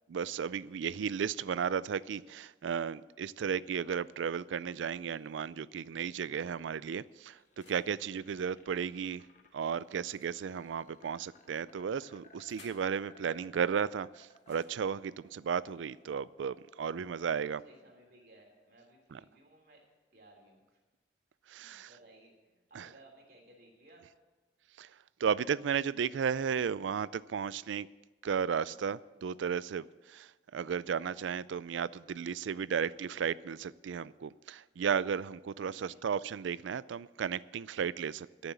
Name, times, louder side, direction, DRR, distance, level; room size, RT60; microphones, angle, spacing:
voice 1, 0.1-9.2 9.5-17.6 19.1-19.2 21.5-21.9 22.7-22.9 24.8-24.9 25.2-27.9 28.2-38.5, right 7 dB, 85° right, 19 dB, 0.4 m, -34 dB
sound 1, 4.8-5.6 6.3-8.0 10.0-11.1 11.9-12.9 14.3-16.3, left 4 dB, 70° left, 2.4 m, -64 dB
sound 2, 7.1-19.0, left 3 dB, 40° left, 1.1 m, -63 dB
voice 2, 17.2-19.8 20.1-20.8 21.5-24.1 35.7-36.0, right 1 dB, 55° right, 0 dB, 3.2 m, -60 dB
13.0 x 7.1 x 8.2 m, 1.2 s
head